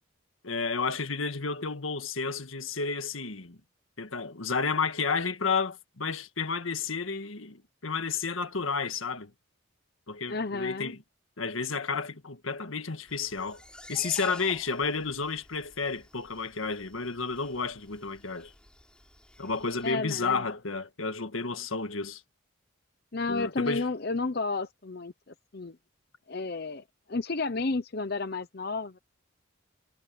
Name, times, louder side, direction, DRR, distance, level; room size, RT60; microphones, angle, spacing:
voice 1, 0.4-3.6 4.0-9.3 10.1-11.0 11.4-13.6 13.9-18.5 19.4-22.2 23.3-23.9, left 4 dB, 90° left, 1.7 m, -31 dB
voice 2, 10.3-11.0 19.8-20.4 23.1-25.1 25.5-25.8 26.3-29.0, left 3 dB, 50° left, 0.8 m, -32 dB
sound 1, 13.1-19.9, left 1 dB, 5° left, 4.8 m, -50 dB
head